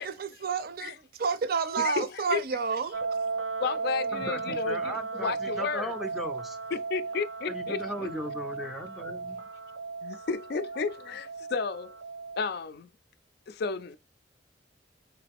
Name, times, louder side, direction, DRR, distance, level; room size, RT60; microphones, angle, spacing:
voice 1, 0.0-3.0, right 5 dB, 55° right, 0.5 m, -30 dB
voice 2, 1.8-2.4 3.6-5.9 6.7-8.1 10.0-12.0 12.4-12.9 13.5-14.0, left 5 dB, 55° left, 0.4 m, -33 dB
sound 1, 2.9-12.6, right 4 dB, 80° right, 0.8 m, -35 dB
voice 3, 4.1-6.6 7.5-9.4, equal, ahead, 0.5 m, -37 dB
3.8 x 3.2 x 3.4 m
head